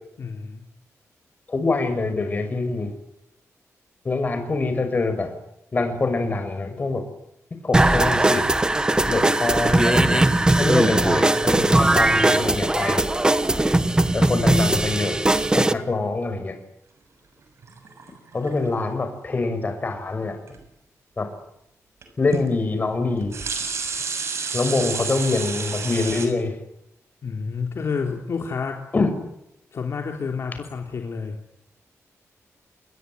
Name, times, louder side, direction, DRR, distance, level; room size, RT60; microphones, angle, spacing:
voice 1, 0.2-0.6 27.2-28.8 29.7-31.4, left 5 dB, 55° left, 2 dB, 3.6 m, -29 dB
voice 2, 1.5-2.9 4.0-5.3 5.7-7.0 7.6-8.5 9.1-10.3 10.6-13.3 14.1-15.2 15.5-16.6 18.3-20.4 21.2-21.3 22.2-23.4 24.5-26.6 28.9-29.1, left 3 dB, 30° left, 7 dB, 6.1 m, -25 dB
sound 1, 7.7-15.7, right 2 dB, 15° right, 1.4 m, -19 dB
sound 2, 17.6-18.7 20.5-20.6 22.0-22.1 22.3-22.5 23.1-26.3, right 5 dB, 55° right, 7.0 m, -30 dB
28.5 x 21.5 x 9.6 m, 0.80 s
wide cardioid pair, 145°, 6 cm